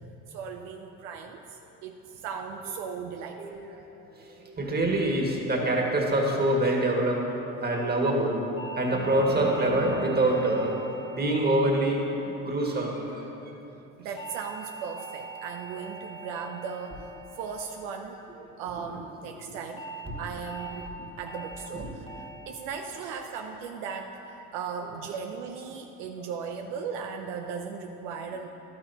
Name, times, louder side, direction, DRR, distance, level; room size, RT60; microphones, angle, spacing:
voice 1, 0.3-3.6 14.0-17.0 17.4-18.2 18.6-19.8 20.2-28.5, right 6 dB, 80° right, 4 dB, 0.6 m, -37 dB
voice 2, 3.4-3.8 4.3-7.2 7.6-8.5 8.8-13.3 14.1-14.2 18.3-18.4 18.6-19.0 21.7-21.9 24.7-25.0, right 1 dB, 25° right, 0 dB, 1.9 m, -26 dB
sound 1, 8.6-13.0 14.2-18.6 19.8-20.1 20.5-20.9 21.3-21.7 22.1-22.5 22.9-23.3 23.7-24.1, right 4 dB, 15° left, 1.2 m, -44 dB
11.5 x 9.4 x 2.9 m, 2.9 s
hypercardioid pair, 65°, 36 cm